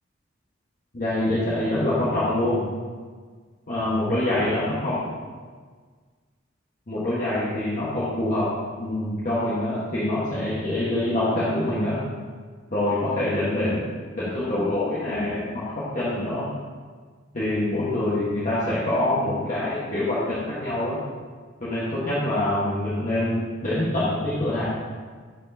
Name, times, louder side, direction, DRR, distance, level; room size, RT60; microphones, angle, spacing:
voice 1, 0.9-2.7 3.7-5.1 6.9-8.5 8.8-12.0 12.7-13.8 14.2-16.5 17.3-21.0 21.6-24.6, left 1 dB, 45° left, -9 dB, 1.3 m, -25 dB
12.0 x 4.4 x 2.7 m, 1.5 s
head